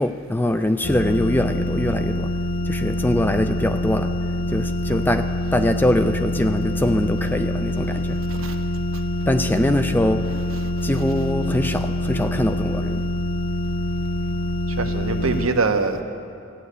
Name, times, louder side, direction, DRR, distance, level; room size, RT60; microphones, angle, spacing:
voice 1, 0.0-2.3 2.6-5.3 5.5-8.2 9.3-10.2 10.8-13.0, left 1 dB, 10° left, 9 dB, 0.4 m, -23 dB
sound 1, 0.8-15.5, left 1 dB, 45° left, 0.7 m, -25 dB
voice 2, 14.8-16.0, right 4 dB, 80° right, 6 dB, 1.0 m, -24 dB
14.5 x 9.4 x 8.0 m, 2.7 s
head